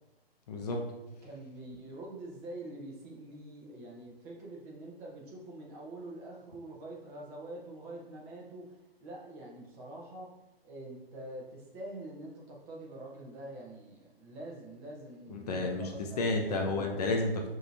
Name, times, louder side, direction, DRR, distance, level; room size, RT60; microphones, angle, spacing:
voice 1, 0.5-0.8 15.3-15.9 16.2-17.5, left 2 dB, 40° left, 2 dB, 0.5 m, -31 dB
voice 2, 1.1-10.3 10.6-16.2 16.5-17.1, right 1 dB, 20° right, -3 dB, 0.8 m, -45 dB
5.2 x 2.8 x 2.6 m, 0.96 s
hypercardioid pair, 135°, 31 cm